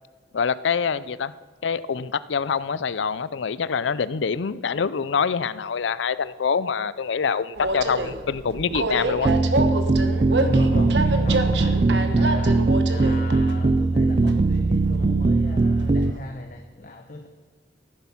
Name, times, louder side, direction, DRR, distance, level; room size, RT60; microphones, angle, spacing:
voice 1, 0.3-1.3 1.6-9.3, left 6 dB, 85° left, 17 dB, 0.5 m, -25 dB
Train, 7.6-16.2, right 2 dB, 70° right, 1.1 m, -29 dB
sound 1, 9.3-16.1, right 3 dB, 30° right, 0.4 m, -20 dB
voice 2, 10.4-17.3, left 1 dB, 45° left, 5 dB, 0.9 m, -35 dB
14.0 x 10.5 x 5.9 m, 1.5 s
head